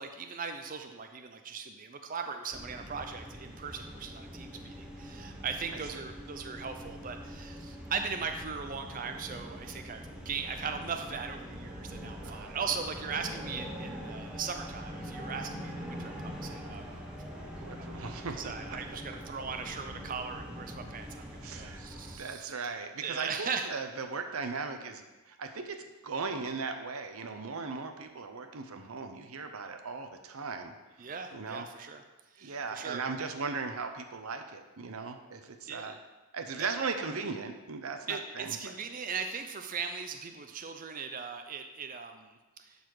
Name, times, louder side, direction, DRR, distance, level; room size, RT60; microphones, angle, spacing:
voice 1, 0.0-17.5 17.8-22.5 23.0-23.7 31.0-32.0 32.3-33.0 35.7-36.0 36.6-36.7 38.1-42.8, right 6 dB, 40° right, 6 dB, 0.5 m, -39 dB
sound 1, 2.5-22.2, equal, 5° right, 1.1 m, -43 dB
voice 2, 12.2-12.5 17.5-18.5 21.4-21.9 22.2-30.7 31.3-31.7 32.4-36.0 36.3-38.6, right 4 dB, 75° right, 6 dB, 0.8 m, -38 dB
11.5 x 4.2 x 4.7 m, 1.1 s
head